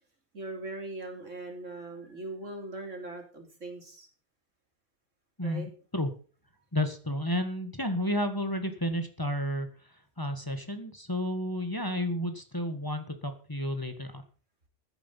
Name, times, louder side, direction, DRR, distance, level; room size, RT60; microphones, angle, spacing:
voice 1, 0.3-4.1 5.4-5.7, right 2 dB, 90° right, 3 dB, 3.8 m, -40 dB
voice 2, 5.4-6.1 6.7-9.7 10.2-14.2, left 1 dB, 15° left, 7 dB, 1.7 m, -31 dB
15.0 x 10.0 x 5.5 m, 0.40 s
omnidirectional pair, 1.3 m